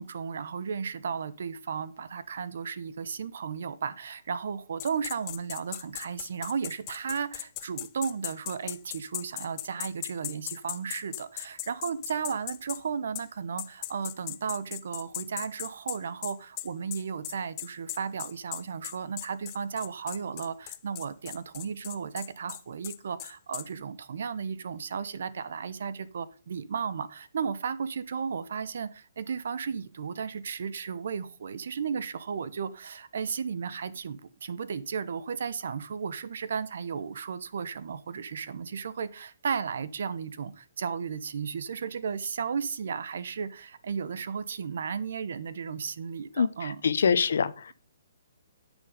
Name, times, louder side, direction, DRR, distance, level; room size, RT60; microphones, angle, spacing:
voice 1, 0.0-46.8, right 6 dB, 60° right, 1.0 m, -34 dB
sound 1, 4.8-12.8 13.1-13.3 13.6-23.7, left 17 dB, 25° left, 0.5 m, -38 dB
voice 2, 46.4-47.7, left 6 dB, 65° left, 0.9 m, -25 dB
10.5 x 6.4 x 5.0 m
hypercardioid pair, 170°, 0 cm